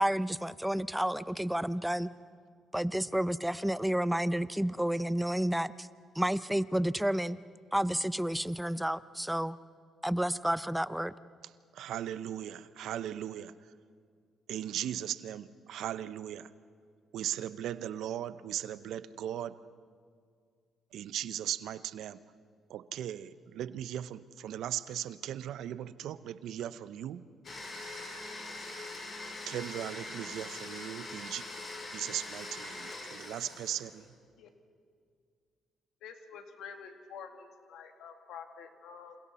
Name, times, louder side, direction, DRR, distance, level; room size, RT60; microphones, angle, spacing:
voice 1, 0.0-2.1 2.7-5.9 6.1-7.4 7.7-9.6 10.0-11.1, right 1 dB, 5° right, 15 dB, 0.5 m, -30 dB
voice 2, 11.8-13.5 14.5-16.5 17.1-19.6 20.9-22.2 22.7-27.2 29.5-31.4 31.9-34.0, right 11 dB, 80° right, 14 dB, 0.7 m, -38 dB
Domestic sounds home sounds, 27.4-34.1, left 2 dB, 45° left, 5.2 m, -43 dB
voice 3, 36.0-39.2, left 6 dB, 85° left, 5 dB, 2.1 m, -48 dB
28.5 x 27.5 x 4.2 m, 2.1 s
cardioid pair, 90°, 0 cm